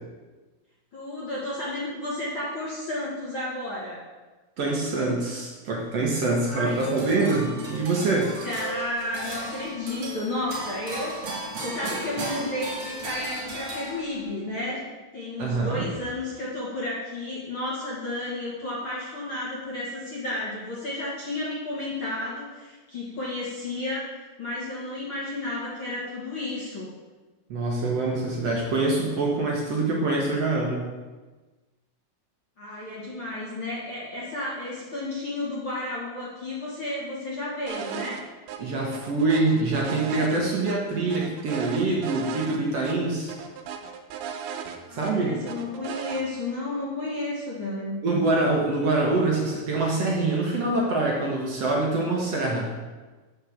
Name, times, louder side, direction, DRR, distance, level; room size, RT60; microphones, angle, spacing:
voice 1, 0.9-4.0 6.5-7.0 7.5-7.6 8.4-11.3 11.6-26.9 32.6-38.2 44.9-48.0, left 2 dB, 45° left, -7 dB, 1.7 m, -32 dB
voice 2, 4.6-8.3 15.4-15.8 27.5-30.9 38.6-43.3 44.9-45.4 48.0-52.7, right 2 dB, 65° right, -2 dB, 1.6 m, -25 dB
sound 1, 6.7-14.4, right 2 dB, 45° right, 2.9 m, -36 dB
sound 2, 37.7-38.2 38.5-38.6 38.9-40.8 41.1-42.6 42.8-43.0 43.3-45.1 45.5-46.2, right 8 dB, 80° right, 2.6 m, -36 dB
6.5 x 6.3 x 7.2 m, 1.3 s
omnidirectional pair, 4.6 m